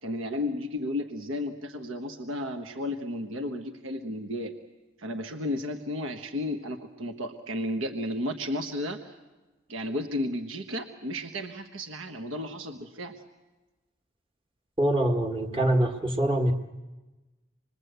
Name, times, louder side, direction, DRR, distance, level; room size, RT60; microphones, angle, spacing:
voice 1, 0.0-4.5 5.0-9.1 9.7-13.1, left 1 dB, 85° right, 6 dB, 1.3 m, -33 dB
voice 2, 14.8-16.5, right 1 dB, 25° right, 3 dB, 1.6 m, -24 dB
27.0 x 21.5 x 8.1 m, 1.2 s
head